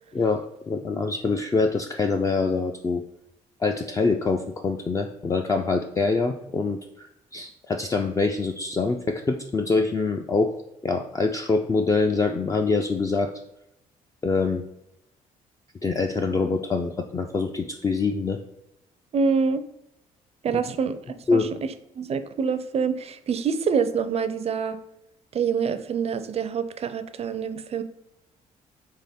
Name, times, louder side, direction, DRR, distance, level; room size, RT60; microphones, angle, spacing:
voice 1, 0.7-3.0 3.6-7.1 7.3-10.5 10.8-13.3 14.2-14.6 15.8-18.4 21.3-21.5, left 4 dB, 20° left, 4 dB, 0.3 m, -24 dB
voice 2, 19.1-19.6 20.4-21.5 22.0-24.8 25.3-27.8, right 6 dB, 45° right, 12 dB, 0.4 m, -26 dB
3.6 x 3.5 x 4.1 m, 0.86 s
cardioid pair, 80°, 15 cm